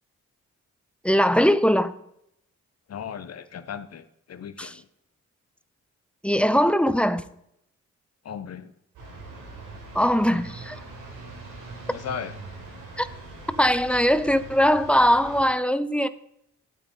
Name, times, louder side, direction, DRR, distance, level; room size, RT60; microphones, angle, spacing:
voice 1, 1.0-1.9 4.6-4.7 6.2-7.2 9.9-10.8 13.0-13.1 13.6-16.1, equal, 5° left, 0.8 m, -21 dB
voice 2, 2.9-4.9 8.2-8.7 11.9-12.3, left 7 dB, 55° left, 1.0 m, -36 dB
sound 1, 8.9-15.5, right 3 dB, 85° right, 4.3 m, -42 dB
12.5 x 8.8 x 4.2 m
cardioid pair, 65°, 31 cm